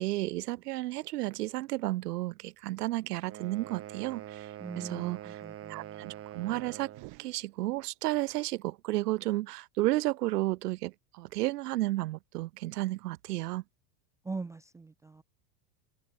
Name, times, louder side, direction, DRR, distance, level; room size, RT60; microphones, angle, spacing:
voice 1, 0.0-5.4 5.7-6.9 7.2-13.6, right 17 dB, 80° right, 1.8 m, -32 dB
sound 1, 3.2-7.1, right 12 dB, 30° right, 1.5 m, -44 dB
voice 2, 4.6-6.1 14.2-15.2, right 4 dB, 5° right, 0.5 m, -41 dB
sound 2, 6.9-8.2, right 32 dB, 55° right, 5.3 m, -53 dB
supercardioid pair, 130°, 46 cm